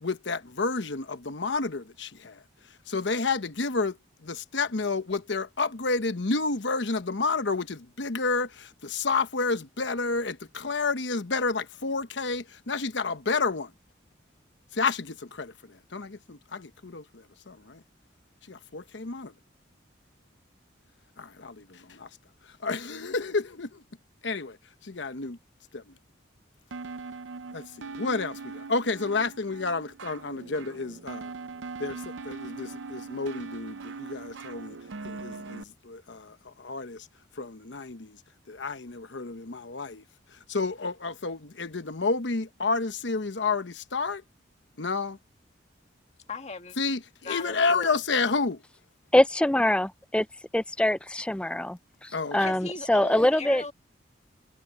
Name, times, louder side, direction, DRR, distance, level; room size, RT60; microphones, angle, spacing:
voice 1, 0.0-2.4 2.9-13.7 14.7-17.8 18.5-19.3 21.2-22.1 22.6-23.8 24.2-24.6 24.8-25.4 25.7-25.9 27.5-31.3 31.8-34.8 35.0-37.1 37.4-38.2 38.5-40.0 40.3-44.2 44.8-45.2 46.8-48.6 52.1-52.4, left 4 dB, 70° left, 1.0 m, -30 dB
sound 1, 26.7-35.6, right 4 dB, 80° right, 0.6 m, -41 dB
voice 2, 46.3-46.8 47.2-48.0 52.4-53.7, left 4 dB, 35° left, 1.8 m, -37 dB
voice 3, 49.1-50.3 50.5-53.7, left 1 dB, 5° left, 0.4 m, -24 dB
head